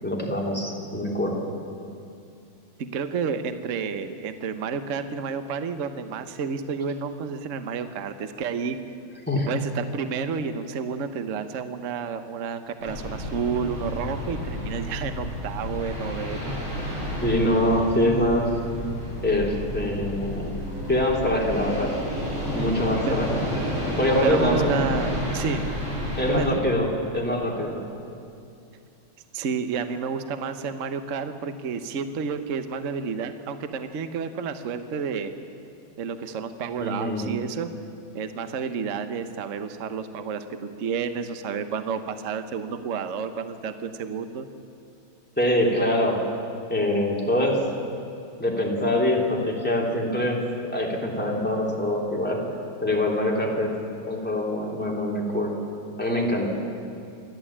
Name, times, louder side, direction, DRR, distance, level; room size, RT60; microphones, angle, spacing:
voice 1, 0.0-1.4 9.3-9.5 17.2-18.5 19.2-20.5 20.9-21.9 22.5-23.4 24.0-24.9 26.2-26.9 27.1-27.8 36.8-37.2 45.4-46.2 46.7-47.6 48.4-50.4 50.7-52.4 52.8-53.7 54.1-55.5 56.0-56.5, left 1 dB, 5° left, -3 dB, 3.1 m, -24 dB
voice 2, 2.8-8.8 9.5-16.6 23.1-23.2 24.2-25.7 26.3-26.6 29.3-35.4 36.0-37.7 38.1-44.5, right 6 dB, 45° right, 9 dB, 1.1 m, -30 dB
sound 1, 12.8-26.4, left 1 dB, 85° right, 8.9 m, -31 dB
28.5 x 12.5 x 8.7 m, 2.5 s
omnidirectional pair, 2.3 m